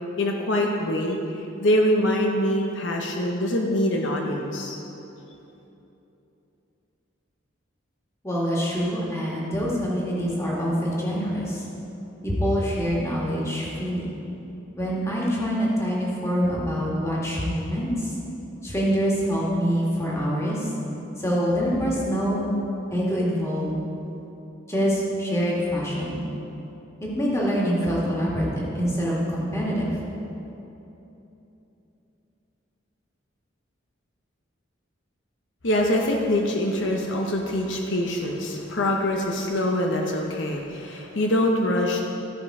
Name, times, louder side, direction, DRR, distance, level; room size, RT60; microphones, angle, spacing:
voice 1, 0.2-4.8 35.6-42.0, left 1 dB, 70° left, 1 dB, 0.8 m, -24 dB
voice 2, 8.2-11.6 12.2-14.0 14.8-18.1 18.6-20.6 21.2-22.4 22.9-23.8 24.7-26.2 27.2-29.9, equal, 15° left, -6 dB, 1.8 m, -25 dB
14.0 x 5.2 x 4.8 m, 3.0 s
head